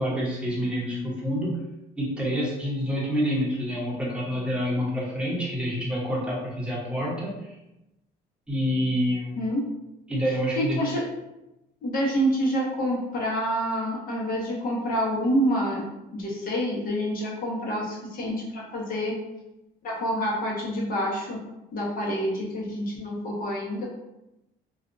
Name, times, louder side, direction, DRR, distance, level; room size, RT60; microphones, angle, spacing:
voice 1, 0.0-1.6 2.0-7.5 8.5-9.4 10.1-10.8, equal, 5° right, -5 dB, 0.9 m, -27 dB
voice 2, 9.4-9.7 10.6-11.0 11.8-15.8 16.1-19.1 19.8-21.4 21.7-23.9, equal, 55° left, -4 dB, 1.0 m, -27 dB
2.6 x 2.3 x 2.5 m, 0.92 s
cardioid pair, 110°, 17 cm